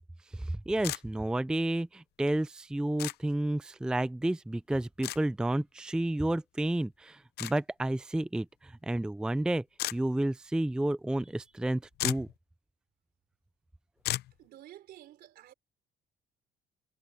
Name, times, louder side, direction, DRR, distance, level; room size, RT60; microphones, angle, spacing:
voice 1, 0.3-9.6 9.9-12.3, right 1 dB, 5° right, 0.5 m, -31 dB
sound 1, 0.8-1.0 3.0-3.2 5.0-5.2 7.4-7.5 9.8-10.0 11.6-11.7 11.9-12.3 14.0-14.3, left 15 dB, 75° left, 0.7 m, -33 dB
voice 2, 14.4-15.5, right 13 dB, 70° right, 3.8 m, -51 dB
cardioid pair, 110°, 17 cm